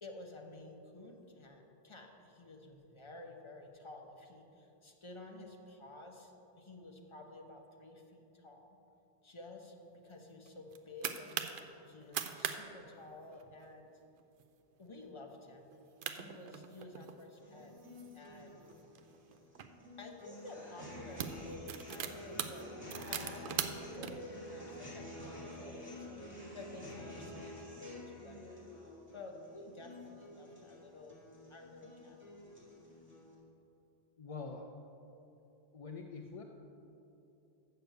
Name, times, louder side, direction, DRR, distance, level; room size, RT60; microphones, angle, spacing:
voice 1, 0.0-8.8 9.2-11.4 11.9-14.0 14.8-17.7 18.1-18.7 20.0-22.7 23.0-28.7 29.1-31.2 31.5-32.2, left 2 dB, 30° left, 2 dB, 0.9 m, -52 dB
sound 1, 10.5-11.6 12.0-12.6 12.8-12.9 13.3-13.6 14.2-14.4 14.9-15.0 15.7-15.8 16.0-17.2 17.8-19.7 20.4-20.6 20.9-24.1, right 8 dB, 65° right, 0.7 m, -40 dB
sound 2, 17.3-33.3, left 1 dB, 10° right, 2.2 m, -49 dB
voice 2, 34.2-34.7 35.7-36.4, left 4 dB, 45° left, 2 dB, 0.5 m, -44 dB
6.7 x 6.7 x 7.8 m, 2.9 s
omnidirectional pair, 1.1 m